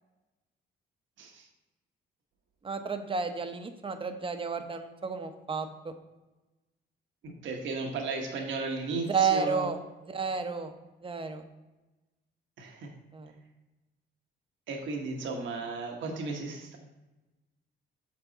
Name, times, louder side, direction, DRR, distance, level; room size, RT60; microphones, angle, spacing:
voice 1, 2.6-5.9 9.1-9.8 10.1-10.7 11.0-11.4 13.1-13.3, right 5 dB, 25° right, 7 dB, 0.9 m, -31 dB
voice 2, 7.2-9.7 12.6-12.9 14.7-16.8, right 3 dB, 75° right, 2 dB, 1.2 m, -35 dB
6.7 x 6.1 x 4.0 m, 1.1 s
cardioid pair, 90°, 20 cm